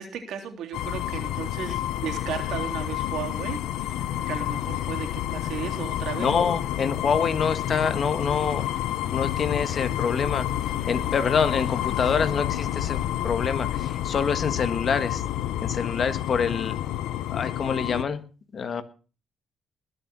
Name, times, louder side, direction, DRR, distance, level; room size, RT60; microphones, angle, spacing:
voice 1, 0.0-6.3, right 8 dB, 80° right, 4 dB, 3.3 m, -35 dB
sound 1, 0.7-18.0, left 12 dB, 90° left, 0.8 m, -29 dB
voice 2, 6.2-8.7 9.1-10.5 10.9-13.0 13.2-15.2 15.6-16.7 17.3-18.2 18.5-18.8, left 6 dB, 50° left, 12 dB, 1.6 m, -26 dB
20.5 x 7.0 x 6.2 m, 0.36 s
cardioid pair, 90°, 0 cm